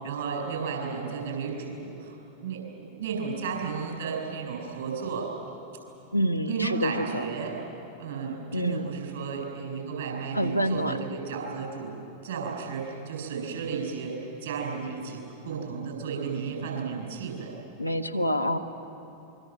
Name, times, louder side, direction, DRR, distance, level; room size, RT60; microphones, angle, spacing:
voice 1, 0.0-2.2 2.4-5.3 6.4-7.5 8.0-11.9 12.2-17.5, right 5 dB, 60° right, 1 dB, 7.8 m, -33 dB
voice 2, 6.1-7.2 8.5-8.9 10.3-10.9 17.8-18.6, equal, 90° left, 5 dB, 1.2 m, -27 dB
25.0 x 24.0 x 7.8 m, 2.9 s
figure-of-eight pair, 90°, 0 cm